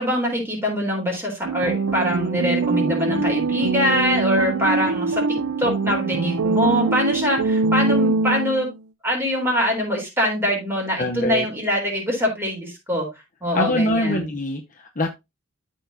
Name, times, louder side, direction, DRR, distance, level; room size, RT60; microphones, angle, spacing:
voice 1, 0.0-8.7 9.0-13.1 13.4-14.3, equal, 10° right, 3.9 m, -23 dB
sound 1, 1.4-8.7, right 3 dB, 85° right, 0.6 m, -23 dB
voice 2, 2.8-3.3 11.0-11.5 13.5-15.1, left 1 dB, 40° left, 0.8 m, -24 dB
13.5 x 4.6 x 2.7 m
head